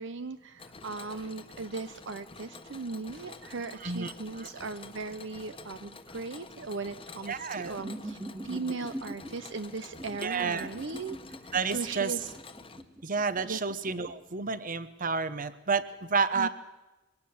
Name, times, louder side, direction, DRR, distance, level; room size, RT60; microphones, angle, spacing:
voice 1, 0.0-8.2 8.4-11.2 11.7-12.3 13.4-13.6 16.4-16.5, right 4 dB, 65° right, 11 dB, 0.7 m, -38 dB
Mechanisms, 0.6-12.8, left 3 dB, 30° left, 1.3 m, -48 dB
voice 2, 3.7-4.5 7.3-7.8 10.2-10.7 11.5-12.2 13.0-16.5, right 5 dB, 45° right, 14 dB, 1.1 m, -30 dB
sound 1, 7.7-9.3 9.9-14.1, right 1 dB, 15° right, 1.7 m, -42 dB
22.5 x 17.5 x 7.2 m, 1.1 s
head